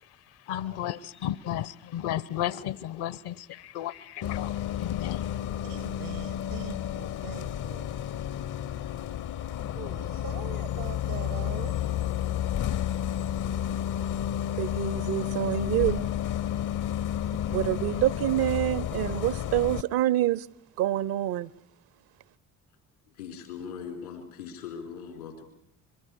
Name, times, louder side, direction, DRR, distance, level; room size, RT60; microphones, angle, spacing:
voice 1, 0.3-5.4, left 12 dB, 60° left, 1.1 m, -34 dB
Bus, 4.2-19.8, left 11 dB, 45° left, 0.8 m, -31 dB
voice 2, 5.6-7.9 9.8-11.9, right 10 dB, 80° right, 1.6 m, -42 dB
voice 3, 14.6-16.0 17.5-20.5 20.8-21.5, right 14 dB, 55° right, 0.9 m, -26 dB
voice 4, 23.1-25.4, left 7 dB, 85° left, 4.4 m, -40 dB
24.5 x 22.5 x 6.5 m
figure-of-eight pair, 50°, 43 cm